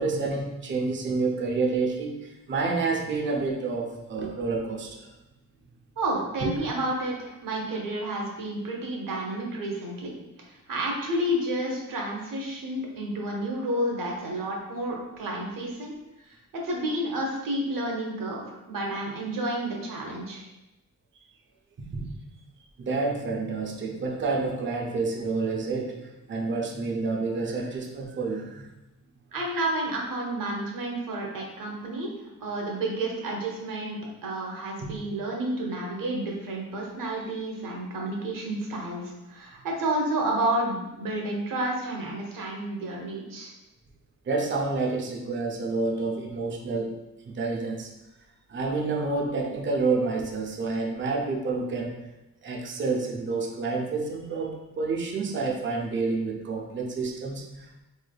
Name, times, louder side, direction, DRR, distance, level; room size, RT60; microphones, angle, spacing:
voice 1, 0.0-5.1 6.4-6.5 21.9-22.1 22.8-28.7 34.8-34.9 44.3-47.0 47.3-47.9 48.5-51.9 52.4-57.8, right 3 dB, 35° right, 1 dB, 0.5 m, -29 dB
voice 2, 6.0-10.1 10.7-15.9 16.2-20.4 29.3-32.1 32.4-34.0 34.2-43.5, right 1 dB, 70° right, -1 dB, 1.0 m, -30 dB
4.2 x 3.2 x 2.3 m, 0.94 s
wide cardioid pair, 160°, 34 cm